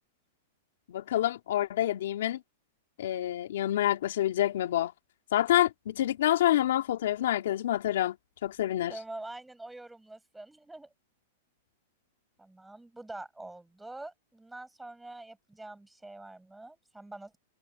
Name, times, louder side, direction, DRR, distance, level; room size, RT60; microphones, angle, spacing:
voice 1, 0.9-2.4 3.0-4.9 5.3-8.2 8.4-8.9, left 12 dB, 75° left, 2.6 m, -27 dB
voice 2, 8.9-10.9 12.4-17.4, right 2 dB, 5° right, 6.9 m, -45 dB
supercardioid pair, 150°, 0 cm